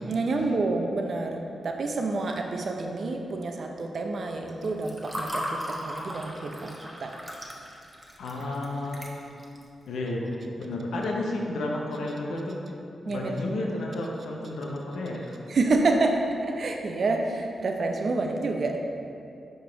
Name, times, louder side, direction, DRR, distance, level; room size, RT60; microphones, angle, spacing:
voice 1, 0.1-7.2 13.1-13.4 15.5-18.8, right 3 dB, 65° right, 2 dB, 0.5 m, -28 dB
Water / Fill (with liquid), 4.5-9.6, equal, 15° right, 1.0 m, -37 dB
voice 2, 8.2-9.1 9.9-12.7 13.1-15.4, left 2 dB, 85° left, -1 dB, 0.7 m, -32 dB
5.2 x 4.8 x 3.8 m, 2.6 s
supercardioid pair, 50°, 0 cm